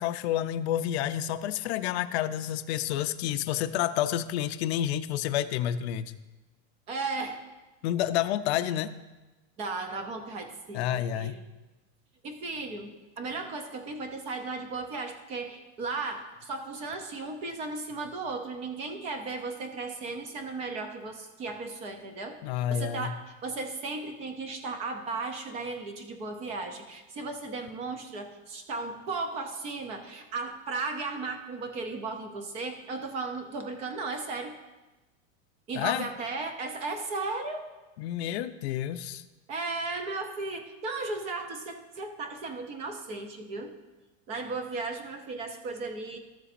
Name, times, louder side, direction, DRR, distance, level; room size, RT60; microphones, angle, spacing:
voice 1, 0.0-6.2 7.8-8.9 10.7-11.4 22.4-23.1 35.8-36.1 38.0-39.2, left 11 dB, 55° left, 10 dB, 0.5 m, -29 dB
voice 2, 6.9-7.4 9.6-11.4 12.2-34.6 35.7-37.7 39.5-43.7 44.3-46.2, right 3 dB, 15° right, 6 dB, 0.5 m, -35 dB
14.0 x 6.9 x 2.5 m, 1.1 s
supercardioid pair, 170°, 39 cm